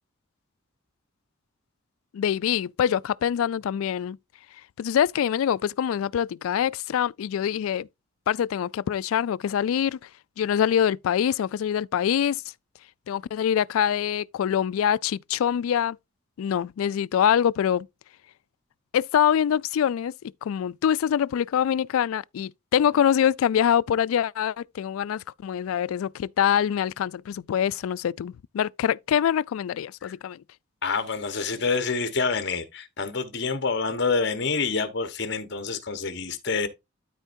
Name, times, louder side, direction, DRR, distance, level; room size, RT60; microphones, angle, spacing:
voice 1, 2.1-4.2 4.8-7.9 8.3-10.0 10.4-12.4 13.1-16.0 16.4-17.9 18.9-20.1 20.4-30.4, left 9 dB, 90° left, 0.3 m, -24 dB
voice 2, 30.8-36.7, left 4 dB, 55° left, 1.2 m, -27 dB
12.5 x 4.4 x 2.7 m
head